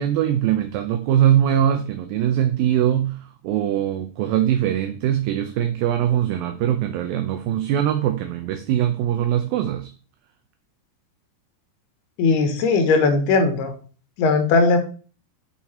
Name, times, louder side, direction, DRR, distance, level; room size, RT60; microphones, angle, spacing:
voice 1, 0.0-3.2 3.4-9.9, right 10 dB, 75° right, 6 dB, 2.4 m, -21 dB
voice 2, 12.2-13.7 14.2-14.8, left 4 dB, 80° left, 7 dB, 3.3 m, -18 dB
8.6 x 5.7 x 4.3 m, 0.37 s
omnidirectional pair, 4.5 m